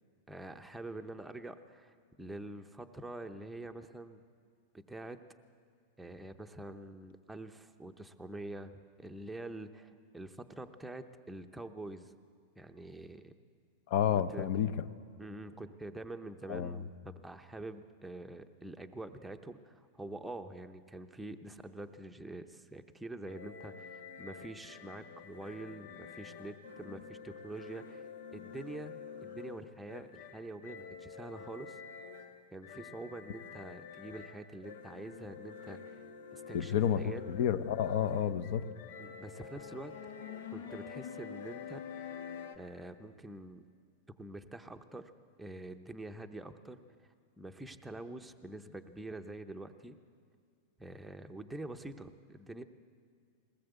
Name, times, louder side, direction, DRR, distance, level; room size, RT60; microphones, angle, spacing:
voice 1, 0.3-4.2 4.7-5.2 6.0-12.1 12.6-13.3 14.1-14.5 15.2-28.0 28.3-31.8 32.5-36.0 36.3-37.2 39.0-39.9 40.5-42.2 42.6-43.6 44.2-45.1 45.4-46.8 47.4-50.0 50.8-52.6, right 2 dB, 5° right, 5 dB, 0.7 m, -46 dB
voice 2, 13.9-14.9 16.5-16.7 36.5-38.7, left 9 dB, 50° left, 14 dB, 0.8 m, -30 dB
sound 1, 23.3-42.6, left 6 dB, 90° left, 1.4 m, -48 dB
21.0 x 18.5 x 8.0 m, 2.2 s
supercardioid pair, 160°, 0 cm